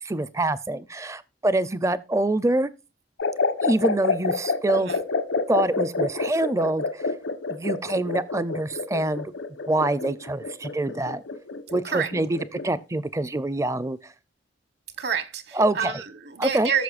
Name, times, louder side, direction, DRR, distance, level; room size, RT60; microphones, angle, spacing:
voice 1, 0.0-2.7 3.6-4.9 5.5-7.0 7.5-9.3 9.7-11.2 11.7-12.4 12.6-14.1 15.5-15.9 16.4-16.7, right 2 dB, 15° right, 0.4 m, -25 dB
sound 1, 3.2-12.8, left 4 dB, 85° left, 1.2 m, -28 dB
voice 2, 15.0-16.8, right 7 dB, 60° right, 1.1 m, -28 dB
14.5 x 6.5 x 2.4 m
head